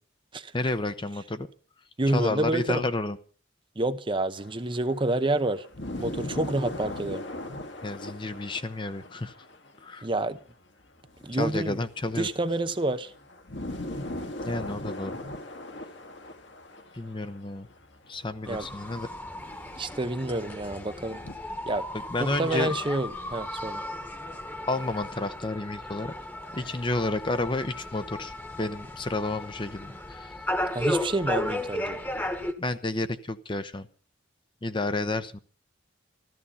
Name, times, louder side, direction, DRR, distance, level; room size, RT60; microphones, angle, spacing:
voice 1, 0.5-1.5 2.1-3.2 7.8-9.3 9.8-10.1 11.3-12.3 14.4-15.1 16.9-17.7 18.1-19.1 21.9-22.7 24.7-26.1 26.5-30.4 32.6-33.9 34.6-35.4, left 2 dB, 25° left, 0.8 m, -31 dB
voice 2, 2.0-2.8 3.8-5.7 6.0-7.2 10.0-10.4 11.2-11.8 12.1-13.1 18.5-18.7 19.8-21.2 21.7-21.9 22.2-23.8 30.7-32.0, right 2 dB, 25° right, 0.8 m, -28 dB
sound 1, 4.3-10.1 10.4-10.5 11.0-21.3, left 1 dB, 65° left, 2.0 m, -40 dB
sound 2, 18.5-32.5, left 1 dB, 10° left, 1.3 m, -35 dB
14.0 x 14.0 x 5.6 m
head